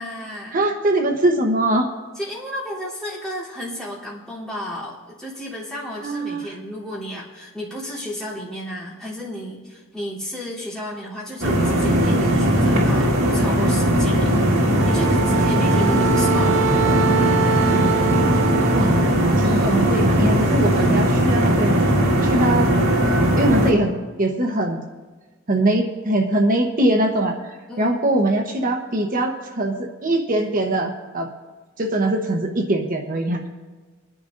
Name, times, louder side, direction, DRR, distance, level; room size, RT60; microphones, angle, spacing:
voice 1, 0.0-0.6 2.1-14.3 14.8-16.7 19.4-19.9 27.7-28.0, equal, 5° left, -9 dB, 3.2 m, -33 dB
voice 2, 0.5-1.9 6.0-6.5 17.8-18.0 18.7-19.0 19.4-21.8 22.2-23.9 24.2-24.8 25.5-31.3 31.8-33.5, right 1 dB, 40° right, 2 dB, 0.9 m, -22 dB
sound 1, 11.4-23.7, equal, 80° right, 1.8 m, -18 dB
Wind instrument woodwind instrument, 14.8-19.2, right 7 dB, 65° right, 0.4 m, -24 dB
24.5 x 10.0 x 2.6 m, 1.3 s
head